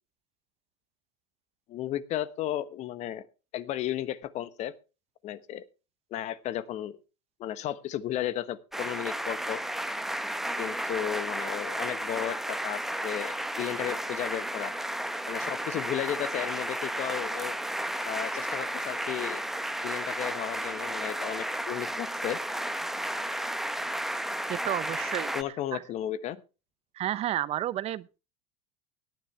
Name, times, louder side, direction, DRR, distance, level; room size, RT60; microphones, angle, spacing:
voice 1, 1.7-3.2 3.5-4.7 5.2-5.6 6.1-7.0 7.4-9.6 10.6-14.7 15.3-17.5 18.0-19.4 19.8-22.4 25.3-26.4, left 12 dB, 45° left, 1.2 m, -34 dB
sound 1, 8.7-25.4, right 1 dB, ahead, 1.0 m, -33 dB
voice 2, 24.5-25.3 25.7-25.8 27.0-28.1, right 13 dB, 40° right, 0.7 m, -31 dB
18.0 x 10.0 x 3.3 m
hypercardioid pair, 90°, 16 cm